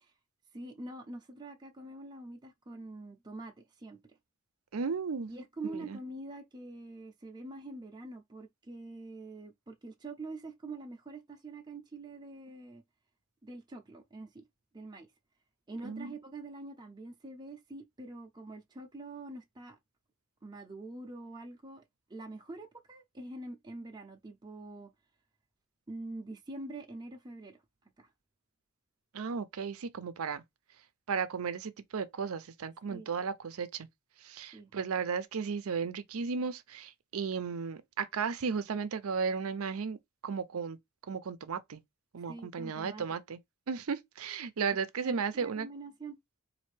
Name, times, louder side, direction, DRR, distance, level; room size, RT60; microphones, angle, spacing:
voice 1, 0.5-4.0 5.2-12.8 13.4-14.4 14.7-15.1 15.7-19.8 20.4-21.8 22.1-24.9 25.9-27.6 28.0-28.1 32.9-33.1 34.5-34.7 42.3-43.2 45.0-46.2, right 2 dB, 20° right, 0.6 m, -45 dB
voice 2, 4.7-5.3 5.7-6.0 15.8-16.1 29.1-30.4 31.1-33.9 34.2-40.0 40.2-40.8 41.1-41.8 42.1-43.4 43.7-45.7, right 5 dB, 80° right, 0.5 m, -35 dB
4.2 x 2.6 x 3.2 m
head